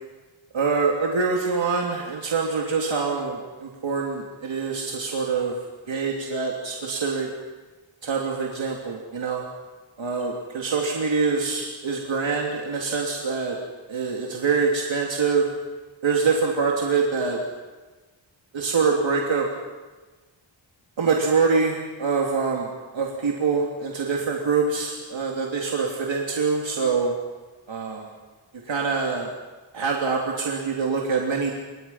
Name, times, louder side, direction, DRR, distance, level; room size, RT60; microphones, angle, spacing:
voice 1, 0.5-5.6 5.9-7.3 8.0-9.4 10.0-13.6 13.9-15.5 16.0-17.4 18.5-19.5 21.0-27.1 27.7-28.1 28.7-29.3 29.7-31.5, right 4 dB, 75° right, -1 dB, 3.0 m, -25 dB
29.0 x 25.5 x 5.8 m, 1.3 s
wide cardioid pair, 180°, 46 cm